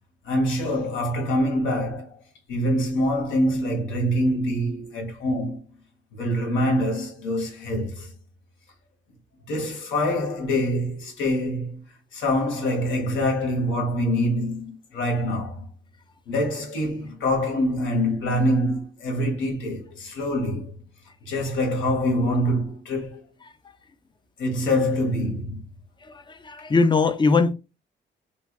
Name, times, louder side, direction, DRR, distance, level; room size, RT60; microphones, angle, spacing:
voice 1, 0.2-2.2 2.5-5.6 6.1-8.1 9.5-11.8 12.1-15.7 16.3-20.7 21.2-23.2 24.4-25.6, equal, 75° left, 1.5 m, -25 dB
voice 2, 26.1-27.5, left 4 dB, 25° left, 0.6 m, -21 dB
3.4 x 3.3 x 2.4 m
cardioid pair, 90°, 20 cm